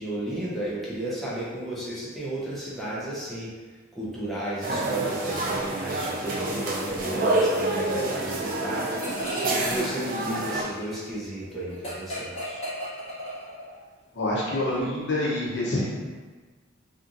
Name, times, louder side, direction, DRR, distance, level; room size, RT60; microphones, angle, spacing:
voice 1, 0.0-3.5 3.9-8.9 9.4-12.6, right 1 dB, ahead, -9 dB, 0.6 m, -33 dB
sound 1, 4.6-10.6, right 2 dB, 45° right, 0.4 m, -27 dB
sound 2, 9.0-9.7 10.0-13.8, equal, 30° left, 0.8 m, -36 dB
voice 2, 14.1-15.9, left 1 dB, 60° left, -5 dB, 0.7 m, -26 dB
2.7 x 2.5 x 2.5 m, 1.4 s
head